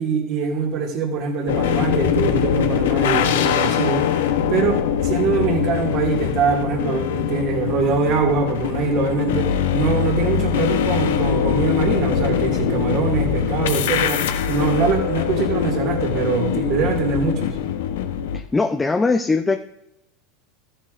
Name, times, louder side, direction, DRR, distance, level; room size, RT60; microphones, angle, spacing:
voice 1, 0.0-17.5, right 5 dB, 50° right, 1 dB, 2.3 m, -23 dB
sound 1, 1.5-18.4, left 8 dB, 80° left, 0.9 m, -22 dB
voice 2, 18.5-19.6, left 3 dB, 15° left, 4 dB, 0.7 m, -19 dB
14.0 x 10.0 x 2.6 m, 0.84 s
hypercardioid pair, 95°, 0 cm